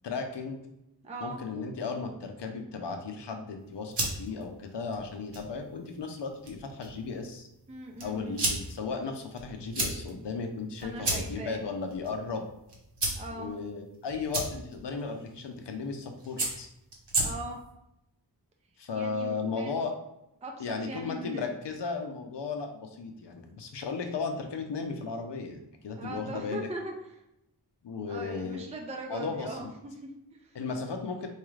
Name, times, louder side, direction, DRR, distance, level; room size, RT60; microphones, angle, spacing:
voice 1, 0.0-0.6 1.2-7.5 8.0-12.4 13.3-16.7 18.8-19.9 20.6-26.7 27.8-28.7 29.1-29.7 30.5-31.3, left 4 dB, 75° left, 4 dB, 0.7 m, -35 dB
voice 2, 1.0-1.4 7.7-8.4 10.8-11.6 13.1-13.5 17.2-17.6 18.9-19.8 20.4-21.6 26.0-27.2 28.1-30.6, right 1 dB, 15° right, 1 dB, 0.4 m, -40 dB
sound 1, 3.6-17.7, right 2 dB, 75° right, 1.1 m, -36 dB
4.6 x 2.4 x 3.1 m, 0.86 s
wide cardioid pair, 80°, 42 cm